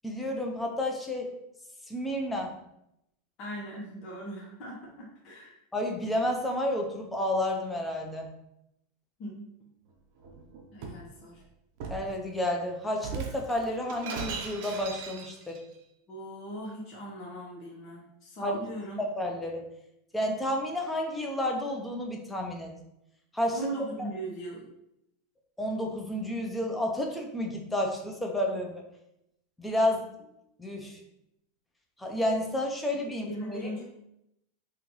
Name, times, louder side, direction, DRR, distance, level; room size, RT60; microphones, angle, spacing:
voice 1, 0.0-1.3 1.9-2.5 5.7-8.3 11.9-15.6 18.4-18.5 19.0-19.6 20.1-22.7 23.3-23.6 24.0-24.1 25.6-28.8 29.6-30.1 30.6-31.0 32.0-33.7, left 1 dB, 10° left, 1 dB, 0.7 m, -31 dB
voice 2, 3.4-5.6 9.2-9.5 10.7-11.4 16.1-19.0 23.5-24.6 33.2-33.8, right 1 dB, 45° left, -4 dB, 0.9 m, -39 dB
Shatter, 10.2-11.1 11.8-12.1 13.0-15.6, right 5 dB, 60° right, 0.6 m, -38 dB
3.7 x 2.4 x 3.0 m, 0.81 s
hypercardioid pair, 100°, 0 cm